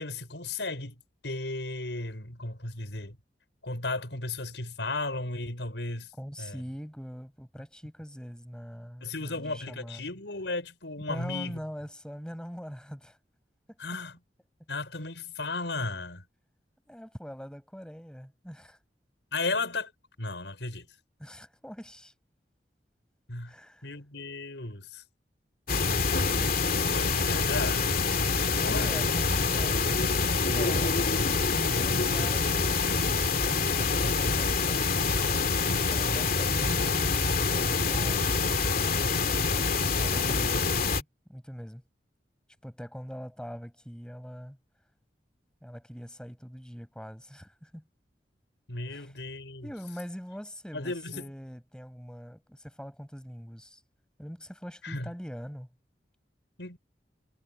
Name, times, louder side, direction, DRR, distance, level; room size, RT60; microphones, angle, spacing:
voice 1, 0.0-3.2 3.6-6.1 6.4-6.6 9.0-11.6 13.8-14.2 14.7-16.3 19.3-19.9 20.2-20.9 23.3-23.5 23.8-25.0 26.6-27.8 28.6-28.9 31.6-32.3 48.7-49.7 50.7-51.3 54.8-55.1 56.6-56.8, left 3 dB, 90° left, 5.8 m, -35 dB
voice 2, 6.2-10.0 11.1-13.2 16.9-18.8 21.2-22.1 23.5-23.9 26.4-26.5 28.5-31.0 31.5-34.9 35.9-39.0 39.6-41.8 42.6-44.6 45.6-47.8 48.9-49.1 49.6-53.8 54.2-55.7, equal, 5° left, 5.7 m, -42 dB
sound 1, 25.7-41.0, left 4 dB, 55° left, 2.5 m, -26 dB
head